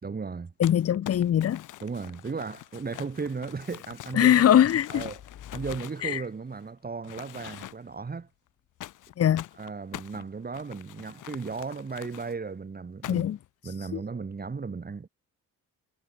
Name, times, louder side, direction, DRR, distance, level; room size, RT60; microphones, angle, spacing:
voice 1, 0.0-0.5 1.8-4.6 4.9-5.2 5.5-8.3 9.6-13.3 13.6-15.1, right 4 dB, 30° right, 4.3 m, -35 dB
Crumpling crinkling, 0.6-6.7 7.0-8.0 8.8-12.3 13.0-13.5, left 14 dB, 85° left, 6.0 m, -44 dB
voice 2, 0.6-1.6 4.1-5.0 6.0-6.2 9.2-9.5 13.1-13.4 13.9-14.0, left 10 dB, 50° left, 1.0 m, -22 dB
cardioid pair, 90°, 30 cm